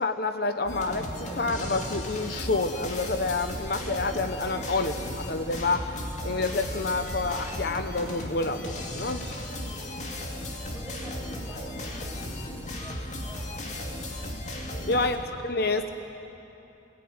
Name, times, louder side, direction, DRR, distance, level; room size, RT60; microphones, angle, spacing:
voice 1, 0.0-5.9 6.2-9.2 14.9-15.2 15.4-15.9, left 3 dB, 60° left, 8 dB, 0.9 m, -28 dB
sound 1, 0.7-15.2, left 1 dB, 40° left, 2.4 m, -36 dB
voice 2, 9.5-9.9 10.7-13.6 14.7-15.1 15.4-15.7, right 1 dB, 10° right, -4 dB, 6.5 m, -47 dB
27.5 x 17.5 x 9.6 m, 3.0 s
head